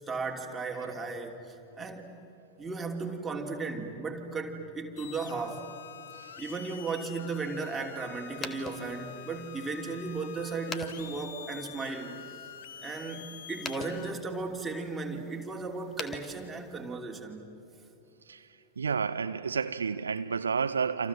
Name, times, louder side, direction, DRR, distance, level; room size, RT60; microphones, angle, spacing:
voice 1, 0.1-2.1 2.6-5.7 6.4-12.2 12.8-17.5, right 4 dB, 10° right, 3.1 m, -36 dB
voice 2, 0.8-1.1 6.1-6.4 18.3-18.5 18.8-21.1, right 5 dB, 70° right, 0.6 m, -31 dB
sound 1, 5.0-14.1, left 10 dB, 60° left, 1.1 m, -47 dB
sound 2, 8.3-17.0, left 4 dB, 20° left, 1.7 m, -46 dB
28.5 x 28.0 x 7.4 m
figure-of-eight pair, 90°, 0 cm